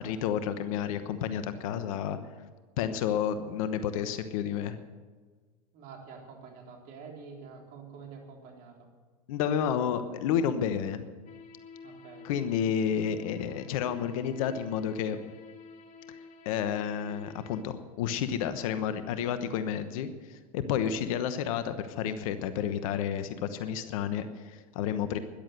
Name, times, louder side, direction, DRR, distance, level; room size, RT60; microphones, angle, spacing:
voice 1, 0.0-2.2 2.8-4.8 9.3-11.0 12.2-15.2 16.4-25.2, left 8 dB, 65° left, 11 dB, 1.1 m, -30 dB
voice 2, 5.7-8.9 11.8-12.3, right 5 dB, 50° right, 1 dB, 3.7 m, -47 dB
sound 1, 11.3-17.6, left 4 dB, 40° left, 1.8 m, -49 dB
13.5 x 11.0 x 7.8 m, 1.4 s
hypercardioid pair, 95°, 19 cm